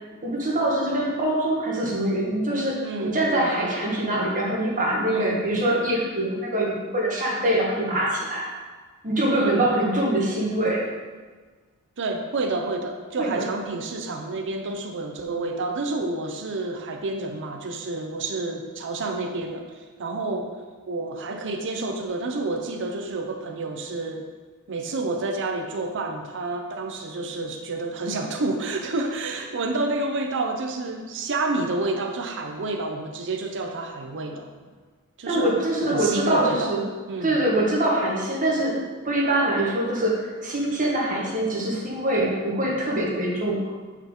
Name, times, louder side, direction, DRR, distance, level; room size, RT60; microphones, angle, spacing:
voice 1, 0.2-8.5 9.0-10.8 13.2-13.5 35.3-36.9 37.2-43.7, right 1 dB, 35° right, -3 dB, 1.5 m, -24 dB
voice 2, 2.8-3.5 5.1-5.4 9.3-9.6 12.0-20.6 20.9-24.3 24.7-34.5 35.2-35.5 35.9-36.8 37.1-37.4, right 2 dB, 55° right, 4 dB, 0.6 m, -29 dB
7.8 x 4.6 x 3.7 m, 1.4 s
head